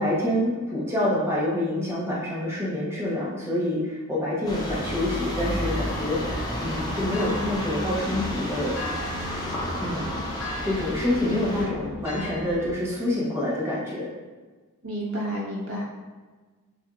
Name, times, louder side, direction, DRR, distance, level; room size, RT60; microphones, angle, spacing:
voice 1, 0.0-8.8 9.8-10.3 10.6-14.1, left 1 dB, 10° right, -7 dB, 0.9 m, -27 dB
sound 1, 4.4-11.6, equal, 15° left, 0.6 m, -31 dB
sound 2, 5.6-12.7, left 1 dB, 70° left, 1.5 m, -38 dB
voice 2, 11.2-11.8 14.8-15.8, equal, 75° right, -5 dB, 1.2 m, -30 dB
6.3 x 2.6 x 2.4 m, 1.3 s
head